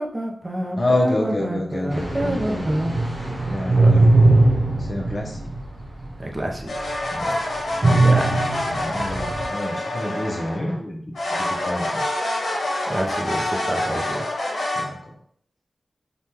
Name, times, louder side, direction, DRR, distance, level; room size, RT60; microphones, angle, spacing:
voice 1, 0.0-2.9 3.7-4.0 6.2-6.7 8.0-8.3 12.9-14.2, right 1 dB, 25° right, 1 dB, 0.5 m, -27 dB
voice 2, 0.8-2.8 3.5-4.3 4.8-5.4 7.1-7.4 8.7-11.1 11.4-12.0 14.7-15.1, left 1 dB, 40° left, -1 dB, 0.7 m, -27 dB
sound 1, 1.9-6.2 6.6-6.7 7.8-9.5, right 2 dB, 50° right, 0.9 m, -19 dB
sound 2, 6.7-10.8 11.1-14.8, left 1 dB, 80° left, 0.8 m, -26 dB
3.4 x 2.2 x 2.8 m, 0.65 s
wide cardioid pair, 85°, 0 cm